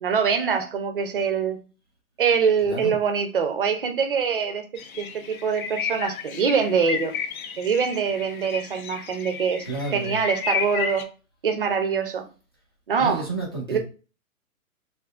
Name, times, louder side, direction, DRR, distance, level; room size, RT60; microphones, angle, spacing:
voice 1, 0.0-1.6 2.2-4.6 4.9-7.2 7.6-9.6 9.9-11.1 11.4-12.3 12.9-13.2 13.7-13.8, right 6 dB, 40° right, 6 dB, 0.5 m, -24 dB
voice 2, 2.6-3.0 9.7-10.2 13.0-13.8, right 3 dB, 20° left, -5 dB, 0.4 m, -30 dB
sound 1, 4.8-11.0, left 6 dB, 75° left, 0.7 m, -32 dB
3.6 x 2.5 x 2.4 m, 0.35 s
hypercardioid pair, 165°, 42 cm